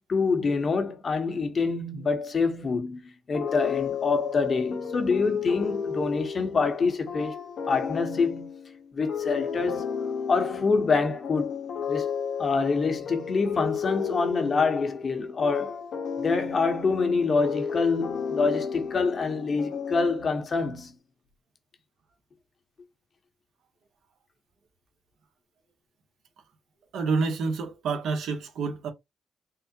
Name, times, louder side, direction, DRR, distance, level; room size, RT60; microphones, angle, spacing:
voice 1, 0.1-7.3 7.7-8.5 8.9-9.9 10.3-11.6 11.9-12.1 12.4-15.8 16.2-20.9, left 4 dB, 50° left, 0.9 m, -26 dB
sound 1, 3.3-20.5, left 7 dB, 75° left, 0.9 m, -33 dB
voice 2, 26.9-28.9, right 4 dB, 75° right, 0.8 m, -28 dB
3.7 x 2.1 x 2.7 m
cardioid pair, 70°, 0 cm